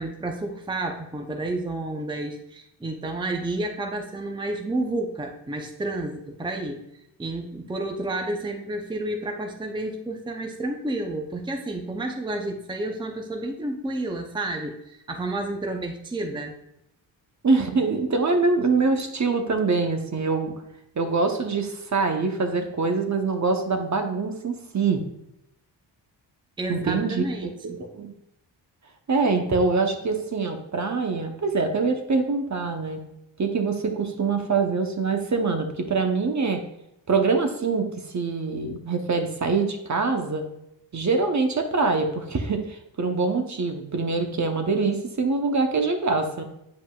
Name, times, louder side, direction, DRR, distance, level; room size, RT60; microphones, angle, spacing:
voice 1, 0.0-6.8 7.2-16.5 26.6-27.8, right 2 dB, 10° right, 3 dB, 0.7 m, -30 dB
voice 2, 17.4-20.5 21.0-25.0 26.7-27.5 27.8-28.1 29.1-33.0 33.4-36.6 37.1-40.4 40.9-46.4, right 4 dB, 40° right, 5 dB, 0.9 m, -24 dB
7.6 x 5.2 x 2.3 m, 0.81 s
cardioid pair, 65°, 46 cm